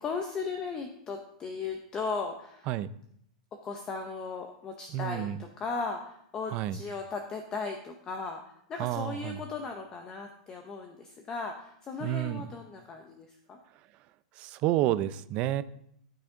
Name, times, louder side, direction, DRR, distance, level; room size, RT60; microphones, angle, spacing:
voice 1, 0.0-2.7 3.6-13.6, left 4 dB, 15° left, 4 dB, 0.7 m, -37 dB
voice 2, 4.9-5.4 6.5-6.8 8.8-9.4 12.0-12.5 14.4-15.6, right 13 dB, 30° right, 14 dB, 0.4 m, -30 dB
13.5 x 6.1 x 3.9 m, 0.70 s
supercardioid pair, 165°, 4 cm